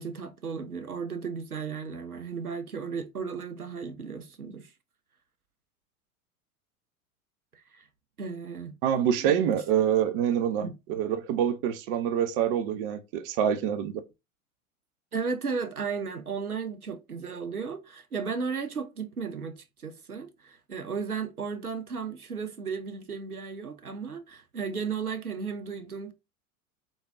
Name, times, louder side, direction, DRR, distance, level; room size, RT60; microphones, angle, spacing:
voice 1, 0.0-4.7 7.5-7.9 8.2-8.8 9.2-9.6 10.6-10.7 15.1-26.1, right 5 dB, 90° right, 0.7 m, -35 dB
voice 2, 8.8-14.0, right 9 dB, 40° right, 0.6 m, -26 dB
3.8 x 3.5 x 2.4 m
figure-of-eight pair, 85°, 43 cm